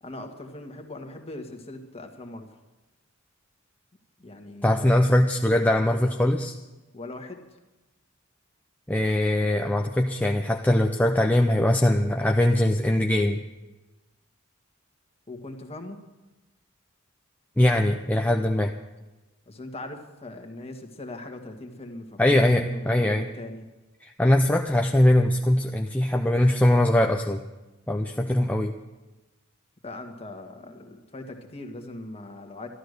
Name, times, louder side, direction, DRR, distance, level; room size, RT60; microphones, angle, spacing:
voice 1, 0.0-2.5 4.2-5.1 6.9-7.4 15.3-16.0 19.5-23.6 29.8-32.7, left 2 dB, 30° left, 4 dB, 1.7 m, -40 dB
voice 2, 4.6-6.5 8.9-13.4 17.6-18.7 22.2-23.3 24.0-27.4 27.9-28.8, left 1 dB, 5° left, 3 dB, 0.6 m, -21 dB
13.0 x 12.5 x 6.6 m, 1.1 s
head